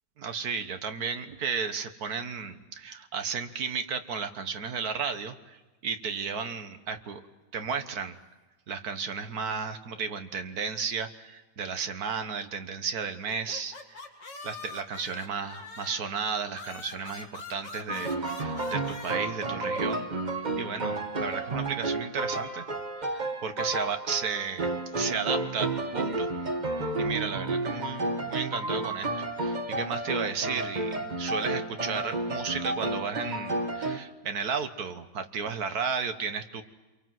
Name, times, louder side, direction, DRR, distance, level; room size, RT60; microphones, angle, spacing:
voice 1, 0.2-5.6 5.8-7.2 7.5-8.1 8.7-14.1 14.4-20.1 20.3-22.7 23.0-24.7 24.9-26.3 27.0-36.6, right 6 dB, 60° right, 8 dB, 1.7 m, -34 dB
sound 1, 13.3-16.1 16.5-19.2, left 3 dB, 85° left, 2.9 m, -43 dB
sound 2, 17.9-34.0, right 2 dB, 30° right, 1.4 m, -31 dB
28.0 x 23.0 x 7.7 m, 1.2 s
omnidirectional pair, 1.9 m